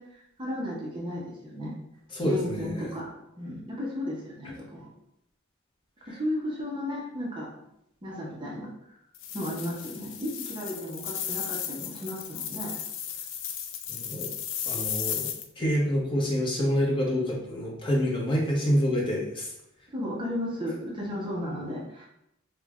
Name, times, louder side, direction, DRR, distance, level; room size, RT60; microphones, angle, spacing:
voice 1, 0.0-1.7 2.2-4.9 6.1-7.5 8.0-9.0 9.3-12.8 19.9-22.1, left 1 dB, 20° right, -4 dB, 0.6 m, -34 dB
voice 2, 2.1-2.8 13.9-14.3 14.7-19.5, equal, 25° left, -2 dB, 0.7 m, -27 dB
sound 1, 9.1-15.5, left 8 dB, 60° left, 0.3 m, -35 dB
5.0 x 2.1 x 2.3 m, 0.79 s
head